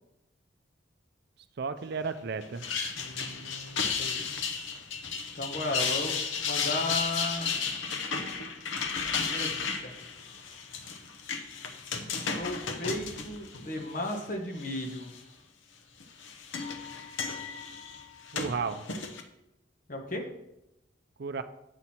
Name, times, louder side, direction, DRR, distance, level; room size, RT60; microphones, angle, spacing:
voice 1, 1.6-2.6 18.3-18.9 21.2-21.4, right 5 dB, 55° right, 10 dB, 0.5 m, -33 dB
sound 1, 2.4-14.2 14.6-15.2 16.0-19.2, left 5 dB, 80° left, 0.8 m, -34 dB
voice 2, 3.0-4.3 5.3-6.1 6.4-7.5 9.2-9.9 12.4-15.1 19.9-20.2, left 1 dB, 45° left, 3 dB, 1.1 m, -35 dB
8.0 x 6.1 x 4.3 m, 0.88 s
head